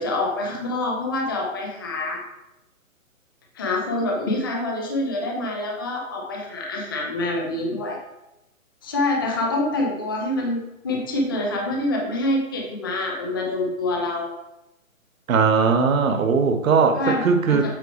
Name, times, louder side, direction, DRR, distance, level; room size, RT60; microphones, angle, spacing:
voice 1, 0.0-2.2 3.5-8.0 8.8-14.3 16.9-17.7, left 2 dB, 15° left, 0 dB, 0.5 m, -26 dB
voice 2, 15.3-17.7, right 5 dB, 75° right, 7 dB, 1.0 m, -19 dB
7.6 x 4.6 x 3.4 m, 0.91 s
hypercardioid pair, 155°, 41 cm